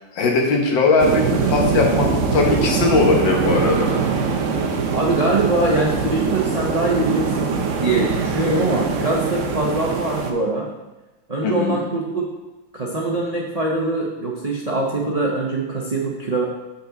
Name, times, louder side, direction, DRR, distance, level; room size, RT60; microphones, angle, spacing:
voice 1, 0.1-3.9 11.4-11.7, left 3 dB, 75° left, 1 dB, 1.9 m, -19 dB
sound 1, 1.0-10.3, right 5 dB, 65° right, 0.8 m, -22 dB
voice 2, 4.9-10.7 11.3-12.3 12.7-16.4, right 2 dB, 80° right, -2 dB, 0.3 m, -23 dB
6.9 x 5.6 x 3.8 m, 1.1 s
omnidirectional pair, 2.0 m